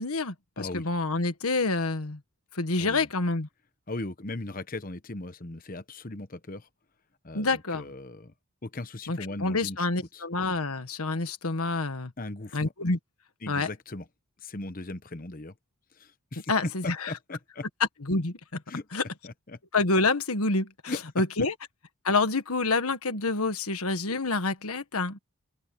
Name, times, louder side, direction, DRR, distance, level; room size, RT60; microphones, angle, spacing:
voice 1, 0.0-2.2 2.5-3.5 7.3-7.9 9.1-12.1 12.5-13.0 13.5-13.7 16.5-17.1 18.1-18.6 18.9-19.0 19.7-21.5 22.0-25.2, left 3 dB, 80° left, 1.6 m, -27 dB
voice 2, 0.6-0.9 2.8-3.1 3.9-6.7 7.2-8.3 8.6-9.9 10.1-10.2 12.2-12.6 13.4-14.1 14.4-15.5 15.9-16.5 16.8-17.7 18.7-18.9 19.2-19.6 20.9-21.0, left 2 dB, 40° left, 1.0 m, -38 dB
open air
head